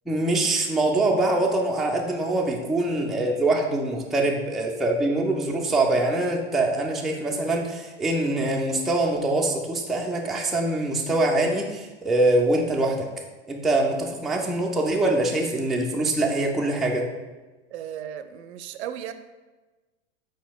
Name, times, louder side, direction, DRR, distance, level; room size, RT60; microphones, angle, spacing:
voice 1, 0.1-13.1 13.5-17.1, right 2 dB, ahead, -1 dB, 0.3 m, -24 dB
voice 2, 17.7-19.1, right 10 dB, 70° right, 10 dB, 0.5 m, -35 dB
5.0 x 4.3 x 2.2 m, 1.2 s
hypercardioid pair, 95°, 34 cm